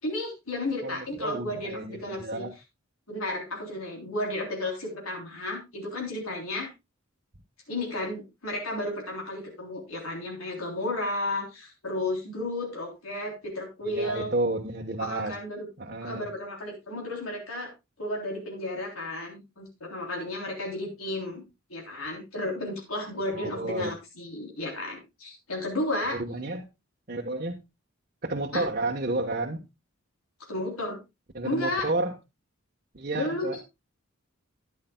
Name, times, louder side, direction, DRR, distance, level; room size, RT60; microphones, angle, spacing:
voice 1, 0.0-2.5 3.1-6.7 7.7-14.3 15.0-15.7 16.0-17.7 18.0-21.4 21.7-26.2 28.5-28.6 30.5-31.0 31.4-31.9 33.1-33.6, left 1 dB, 85° left, 0 dB, 3.5 m, -33 dB
voice 2, 0.8-2.5 13.9-15.4 15.8-16.3 23.3-23.9 26.1-26.7 27.1-27.6 28.2-29.6 31.3-32.1 32.9-33.6, right 2 dB, 40° right, -1 dB, 1.2 m, -31 dB
13.5 x 10.5 x 2.3 m, 0.23 s
head